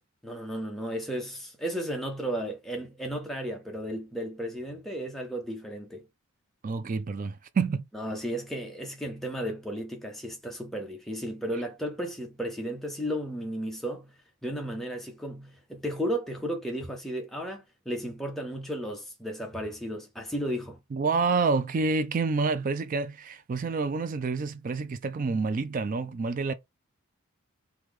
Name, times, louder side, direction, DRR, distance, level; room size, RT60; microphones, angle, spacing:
voice 1, 0.2-6.0 7.9-14.1 14.4-20.8, equal, ahead, 0.7 m, -34 dB
voice 2, 6.6-7.9 20.9-26.5, right 4 dB, 35° right, 0.3 m, -28 dB
3.1 x 2.3 x 3.5 m
head